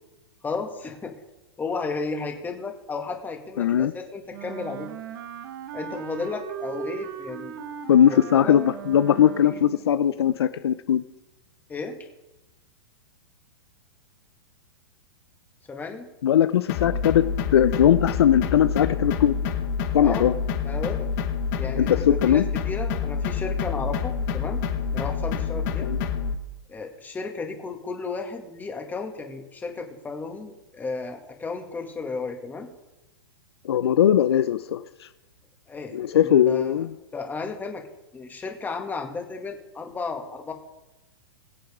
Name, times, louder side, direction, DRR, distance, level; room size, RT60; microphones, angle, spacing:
voice 1, 0.4-1.2 1.6-4.9 5.7-7.5 8.0-8.6 9.5-9.6 11.7-12.1 15.7-16.1 20.0-20.3 20.6-21.1 21.6-24.6 24.9-25.9 26.7-32.7 35.7-36.9 37.1-37.8 38.1-40.5, left 4 dB, 15° left, 3 dB, 2.0 m, -33 dB
voice 2, 3.6-3.9 7.9-11.0 16.2-19.4 19.9-20.3 21.8-22.5 25.8-26.0 33.6-34.8 35.9-36.9, left 10 dB, 75° left, 13 dB, 0.6 m, -20 dB
Wind instrument woodwind instrument, 4.3-9.8, right 10 dB, 60° right, 1.3 m, -38 dB
sound 1, 16.7-26.4, left 6 dB, 50° left, 1.5 m, -27 dB
22.0 x 7.7 x 3.7 m, 1.0 s
hypercardioid pair, 125°, 13 cm